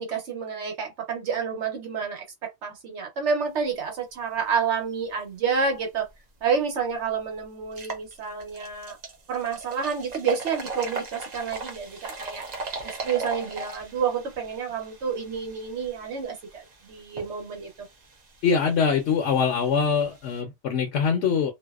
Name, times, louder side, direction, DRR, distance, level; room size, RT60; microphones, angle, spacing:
voice 1, 0.0-6.1 6.4-9.0 9.3-12.5 12.8-17.7, right 6 dB, 70° right, 1.1 m, -29 dB
sound 1, 6.4-6.5 6.9-7.0 7.6-20.4, right 4 dB, 45° right, 0.6 m, -39 dB
voice 2, 18.4-21.5, left 6 dB, 70° left, 0.9 m, -23 dB
2.6 x 2.0 x 2.3 m
omnidirectional pair, 1.2 m